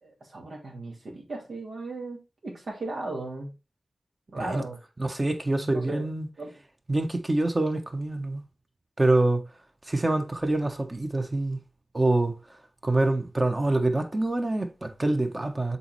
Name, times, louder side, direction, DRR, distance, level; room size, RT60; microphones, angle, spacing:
voice 1, 0.0-3.5 4.3-4.8 5.6-6.1 6.4-6.5, right 2 dB, 75° right, 2.4 m, -36 dB
voice 2, 5.0-6.3 6.9-8.4 9.0-9.4 9.9-11.6 11.9-12.4 12.8-15.8, right 2 dB, 35° right, 1.3 m, -25 dB
6.8 x 4.3 x 3.4 m
cardioid pair, 40°, 0 cm